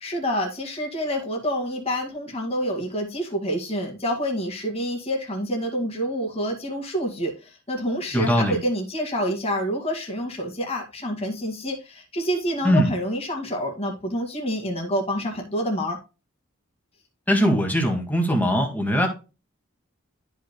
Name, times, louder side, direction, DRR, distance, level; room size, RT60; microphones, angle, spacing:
voice 1, 0.0-16.0, equal, 30° left, 2.2 m, -28 dB
voice 2, 8.1-8.6 12.6-12.9 17.3-19.1, equal, 10° left, 2.0 m, -21 dB
13.0 x 5.5 x 2.2 m
head